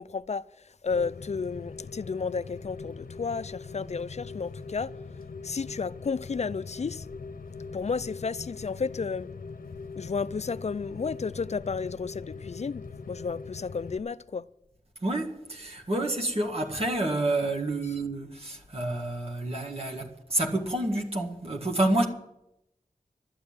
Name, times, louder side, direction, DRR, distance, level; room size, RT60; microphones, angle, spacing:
voice 1, 0.0-4.9 5.4-7.1 7.7-9.3 10.0-14.5, left 5 dB, 50° left, 0.4 m, -32 dB
Rain, 0.9-14.0, left 4 dB, 80° left, 0.8 m, -41 dB
voice 2, 15.0-22.0, right 1 dB, 45° right, 1.8 m, -29 dB
12.5 x 8.5 x 8.6 m
wide cardioid pair, 50°, 14 cm